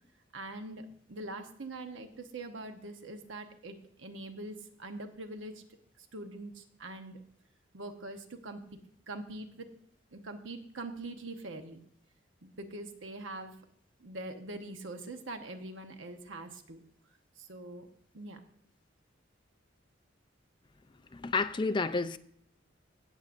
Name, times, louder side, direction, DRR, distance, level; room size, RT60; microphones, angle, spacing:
voice 1, 0.3-5.6 6.0-7.2 7.7-8.6 9.1-9.7 10.1-11.8 12.4-13.6 14.0-16.8 17.4-17.9 18.1-18.4, right 2 dB, 85° right, 1.0 m, -43 dB
voice 2, 21.1-22.2, left 4 dB, 25° left, 0.5 m, -30 dB
17.5 x 7.4 x 2.6 m
head